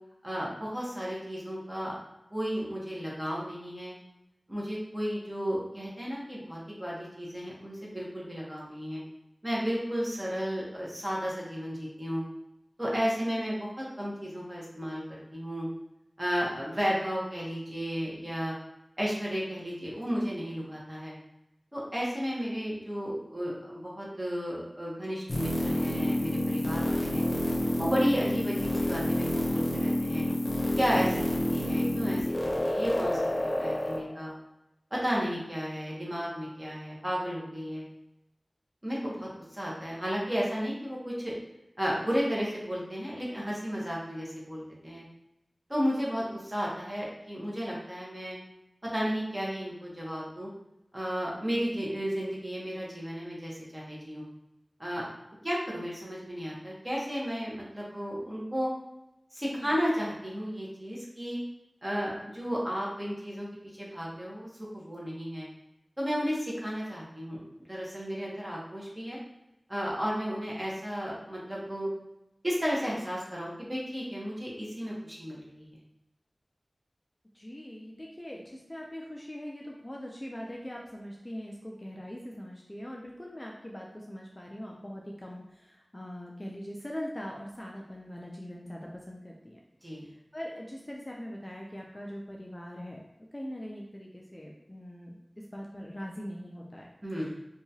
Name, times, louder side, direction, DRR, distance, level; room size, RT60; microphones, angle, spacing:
voice 1, 0.2-1.9 2.3-3.9 4.5-9.0 9.4-12.2 12.8-15.7 16.2-18.5 19.0-21.1 21.7-27.2 27.8-30.2 30.8-34.3 34.9-37.8 38.8-41.3 41.8-45.0 45.7-48.4 48.9-50.5 50.9-54.2 54.8-55.0 55.4-58.7 59.3-61.4 61.8-63.5 63.7-64.5 64.7-65.5 66.0-67.4 67.7-69.2 69.7-71.9 72.4-75.7 89.8-90.1 97.0-97.3, equal, 25° right, -5 dB, 0.9 m, -33 dB
sound 1, 25.3-34.0, left 1 dB, 70° left, 0.6 m, -29 dB
voice 2, 77.3-89.6 90.0-93.0 93.3-96.9 97.2-97.3, equal, 25° left, -2 dB, 0.4 m, -42 dB
2.8 x 2.3 x 2.7 m, 0.88 s
wide cardioid pair, 55°, 0 cm